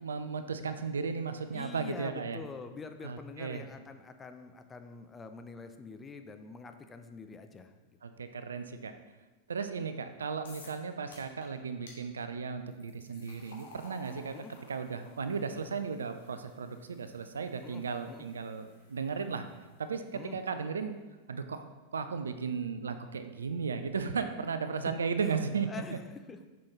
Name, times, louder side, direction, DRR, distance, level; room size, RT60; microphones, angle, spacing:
voice 1, 0.0-2.4 3.0-3.6 8.0-8.9 9.5-14.3 14.7-19.4 19.8-21.0 21.3-21.6 21.9-25.7, right 5 dB, 70° right, 9 dB, 0.4 m, -35 dB
voice 2, 1.5-8.2 14.3-14.5 17.6-17.8 18.1-18.3 20.1-20.4 24.9-25.0 25.2-26.4, left 4 dB, 15° left, 7 dB, 0.5 m, -46 dB
sound 1, 10.4-10.8 11.1-11.5 11.9-12.0 12.7-19.8, left 3 dB, 60° left, 1.4 m, -56 dB
6.2 x 5.6 x 3.1 m, 1.2 s
figure-of-eight pair, 90°, 0 cm